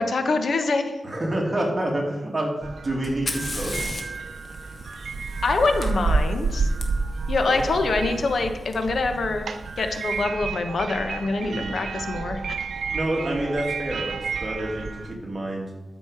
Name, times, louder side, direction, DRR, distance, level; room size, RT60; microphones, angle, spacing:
voice 1, 0.0-0.9 5.4-6.7 7.3-9.5 9.8-12.6, left 3 dB, 65° left, 6 dB, 1.0 m, -25 dB
voice 2, 1.0-2.5 2.8-4.0 7.5-7.6 11.4-11.8 12.9-14.2 14.4-15.7, right 1 dB, 25° right, -1 dB, 2.3 m, -28 dB
sound 1, 2.6-15.1, right 4 dB, 85° right, 0.6 m, -30 dB
Fire, 3.0-6.8 8.7-8.8 9.7-10.1, left 2 dB, 40° left, 1.4 m, -36 dB
13.0 x 5.3 x 4.8 m, 1.1 s
wide cardioid pair, 115°, 0 cm